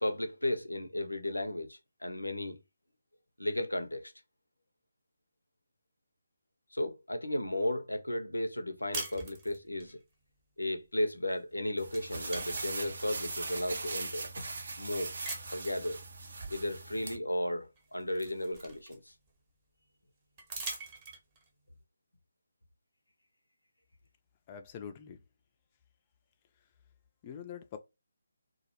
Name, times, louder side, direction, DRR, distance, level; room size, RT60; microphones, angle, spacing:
voice 1, 0.0-2.6 3.4-4.1 6.7-10.0 10.6-14.4 14.8-15.2 15.5-16.0 16.5-19.0, left 1 dB, 85° left, 0.5 m, -34 dB
sound 1, 8.9-9.9 11.3-11.5 11.8-13.5 14.1-14.2 15.2-15.8 17.3-17.4 17.8-19.3 20.4-21.5, right 3 dB, 25° right, 0.8 m, -43 dB
sound 2, 11.8-17.2, right 3 dB, 55° right, 0.5 m, -40 dB
voice 2, 24.5-25.2 27.2-27.8, left 8 dB, 25° left, 0.3 m, -44 dB
2.2 x 2.0 x 2.7 m
figure-of-eight pair, 145°, 0 cm